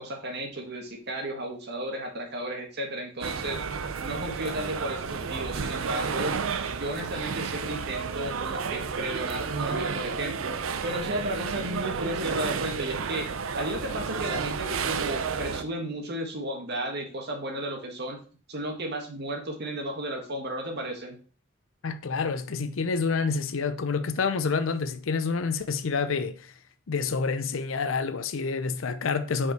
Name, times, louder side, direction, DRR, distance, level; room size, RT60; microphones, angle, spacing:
voice 1, 0.0-3.6 4.0-6.4 6.8-18.2 18.5-21.2, right 1 dB, 55° right, 1.6 m, -34 dB
sound 1, 3.2-15.6, right 5 dB, 90° right, 0.6 m, -31 dB
voice 2, 21.8-26.5 26.9-29.5, left 5 dB, 75° left, 0.6 m, -28 dB
5.4 x 4.8 x 4.6 m
head